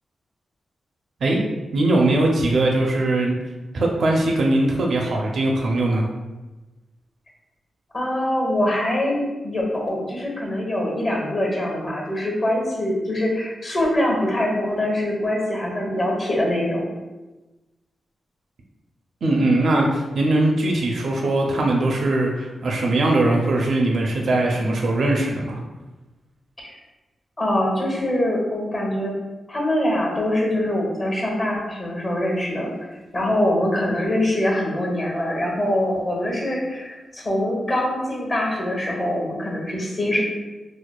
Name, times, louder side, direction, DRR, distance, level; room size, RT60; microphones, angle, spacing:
voice 1, 1.7-3.4 3.7-6.0 19.2-25.6, right 2 dB, 60° right, 0 dB, 0.4 m, -20 dB
voice 2, 7.9-16.9 26.6-26.8 27.4-29.1 29.5-32.7 33.1-40.2, left 1 dB, 40° left, -2 dB, 0.9 m, -23 dB
4.6 x 2.1 x 2.2 m, 1.1 s
wide cardioid pair, 115°, 0 cm